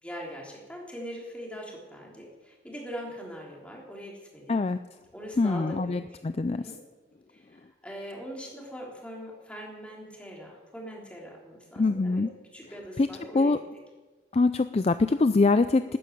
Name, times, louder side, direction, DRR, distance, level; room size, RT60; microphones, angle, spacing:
voice 1, 0.0-4.6 5.1-6.2 6.5-6.8 7.3-12.3 12.5-13.6, equal, 5° left, -2 dB, 3.5 m, -41 dB
voice 2, 5.4-6.6 11.8-12.3 13.0-13.1 13.3-13.6 14.3-16.0, left 3 dB, 35° left, 12 dB, 0.4 m, -24 dB
13.5 x 9.9 x 9.3 m, 1.3 s
head